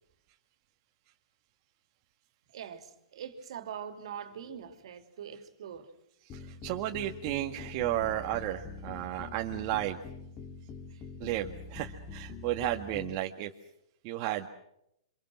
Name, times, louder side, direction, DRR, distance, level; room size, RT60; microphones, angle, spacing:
voice 1, 2.5-5.9 10.9-11.0, right 8 dB, 65° right, 3.1 m, -43 dB
sound 1, 6.3-13.2, left 4 dB, 30° left, 2.8 m, -45 dB
voice 2, 6.3-10.0 11.2-13.5 14.0-14.5, right 14 dB, 40° right, 1.7 m, -33 dB
28.0 x 26.0 x 6.3 m
hypercardioid pair, 130°, 3 cm